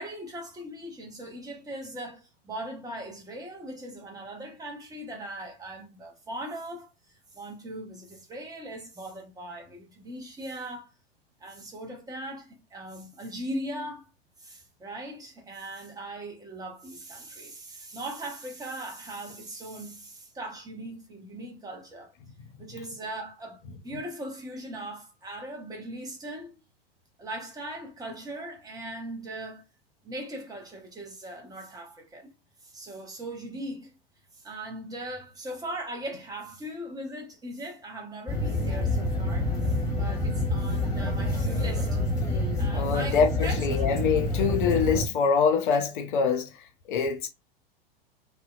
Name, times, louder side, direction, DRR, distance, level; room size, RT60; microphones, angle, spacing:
voice 1, 0.0-6.9 7.3-10.9 11.4-14.0 14.4-22.1 22.6-26.6 27.2-29.7 30.0-32.3 32.6-34.0 34.4-42.0 42.6-43.6, right 1 dB, 10° right, 0.6 m, -39 dB
sound 1, 38.3-45.0, left 1 dB, 10° left, 1.3 m, -27 dB
voice 2, 42.7-46.5 46.9-47.3, left 6 dB, 55° left, 0.5 m, -24 dB
2.7 x 2.0 x 2.3 m
figure-of-eight pair, 90°, 30 cm